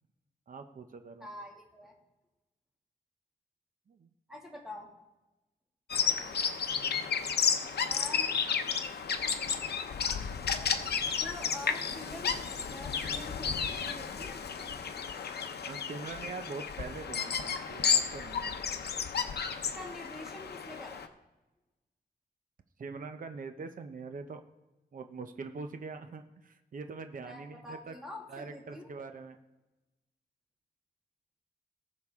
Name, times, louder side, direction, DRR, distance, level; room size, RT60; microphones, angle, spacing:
voice 1, 0.5-1.3 3.9-4.1 6.7-7.1 15.6-18.6 22.8-24.4 24.9-27.9 28.3-29.4, right 4 dB, 55° right, 7 dB, 0.7 m, -43 dB
voice 2, 1.2-1.9 4.3-4.9 7.8-8.4 11.2-12.3 12.6-14.4 19.6-21.0 27.2-28.9, left 1 dB, 5° right, -1 dB, 2.1 m, -46 dB
Bird vocalization bird call bird song, 5.9-21.1, left 6 dB, 85° left, 0.7 m, -32 dB
18.5 x 6.6 x 3.6 m, 1.0 s
wide cardioid pair, 130°, 16 cm